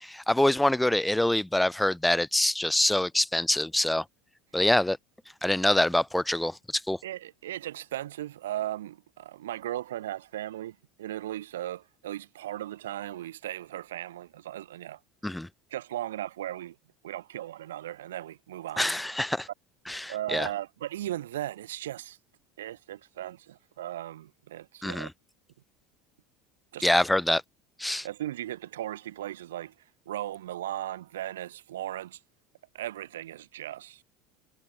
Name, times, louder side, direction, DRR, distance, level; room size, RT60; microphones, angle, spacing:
voice 1, 0.0-4.0 4.5-5.0 5.4-7.0 15.2-15.5 18.8-19.5 19.9-20.5 24.8-25.1 26.8-27.4 27.8-28.1, left 1 dB, 5° left, 1.9 m, -25 dB
voice 2, 7.0-15.0 15.7-16.7 17.0-18.9 20.1-22.2 22.6-25.1 26.7-26.9 27.9-29.7 30.1-32.2 32.7-34.0, right 13 dB, 65° right, 4.6 m, -37 dB
figure-of-eight pair, 70°, 0 cm